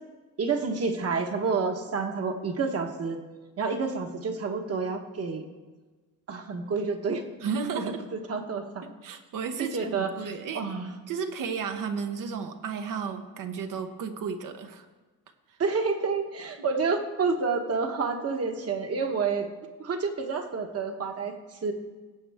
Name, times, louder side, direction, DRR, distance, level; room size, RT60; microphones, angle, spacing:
voice 1, 0.4-3.2 3.6-5.5 6.3-7.2 7.7-8.8 9.6-10.9 15.6-19.5 19.8-21.7, right 4 dB, 45° right, 4 dB, 1.2 m, -29 dB
voice 2, 7.4-8.0 8.8-10.7 11.1-14.8, right 6 dB, 70° right, 7 dB, 1.0 m, -33 dB
17.5 x 7.8 x 3.5 m, 1.3 s
cardioid pair, 130°, 33 cm